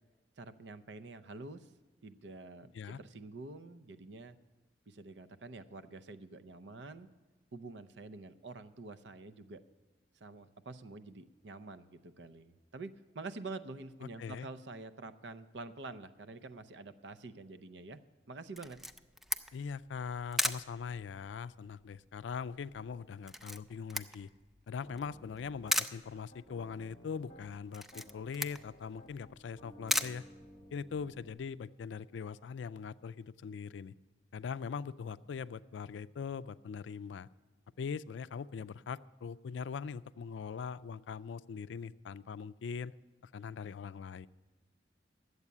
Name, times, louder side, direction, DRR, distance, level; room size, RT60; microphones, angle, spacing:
voice 1, 0.4-1.7 2.0-4.4 4.9-7.1 7.5-9.6 10.1-18.0 18.3-18.8, right 3 dB, 70° right, 11 dB, 0.6 m, -47 dB
voice 2, 14.0-14.5 19.5-24.3 24.7-30.3 30.7-33.9 34.3-37.3 37.8-42.9 43.2-44.3, left 6 dB, 85° left, 16 dB, 0.4 m, -41 dB
Camera, 18.6-31.0, equal, ahead, 0.4 m, -39 dB
Piano, 24.8-25.8 26.3-27.6 27.9-31.3, equal, 35° left, 1.0 m, -56 dB
12.0 x 8.1 x 8.3 m, 1.2 s
head